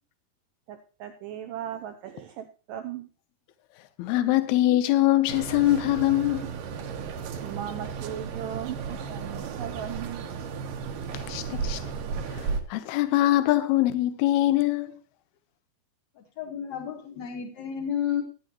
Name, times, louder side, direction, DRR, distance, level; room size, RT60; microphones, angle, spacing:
voice 1, 0.7-3.1 7.4-10.2 11.8-11.9, right 11 dB, 80° right, 1.9 m, -37 dB
voice 2, 4.0-6.5 11.1-11.8 12.3-15.0, left 15 dB, 75° left, 2.8 m, -23 dB
sound 1, 5.3-12.6, right 5 dB, 65° right, 2.5 m, -34 dB
voice 3, 16.2-18.2, left 9 dB, 60° left, 2.1 m, -31 dB
18.0 x 10.0 x 3.0 m
omnidirectional pair, 4.8 m